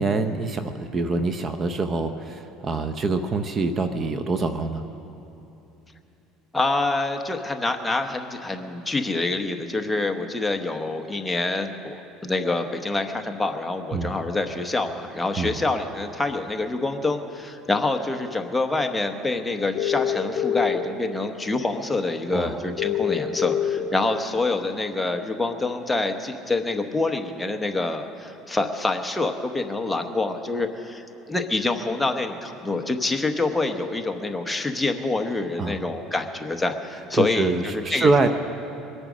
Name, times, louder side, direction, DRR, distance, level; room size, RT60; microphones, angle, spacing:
voice 1, 0.0-4.8 13.9-14.1 15.4-15.6 22.3-22.6 35.6-35.8 37.1-38.3, right 3 dB, 30° right, 9 dB, 0.7 m, -25 dB
voice 2, 6.5-38.3, left 2 dB, 10° left, 5 dB, 0.9 m, -26 dB
sound 1, 19.8-20.8 22.8-23.8, left 10 dB, 40° left, 1.8 m, -24 dB
22.0 x 8.9 x 6.2 m, 2.9 s
cardioid pair, 130°, 0 cm